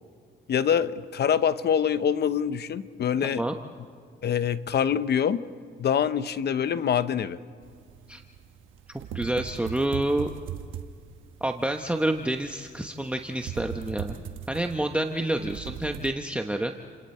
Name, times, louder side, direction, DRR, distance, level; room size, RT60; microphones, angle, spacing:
voice 1, 0.5-3.4 4.2-5.4 5.8-7.4, left 8 dB, 55° left, 13 dB, 0.9 m, -25 dB
sound 1, 7.6-16.1, right 9 dB, 80° right, 1.2 m, -40 dB
voice 2, 9.1-10.3 11.4-14.2 14.5-16.7, right 1 dB, 5° right, 4 dB, 1.0 m, -28 dB
30.0 x 27.0 x 4.4 m, 2.1 s
cardioid pair, 90°, 20 cm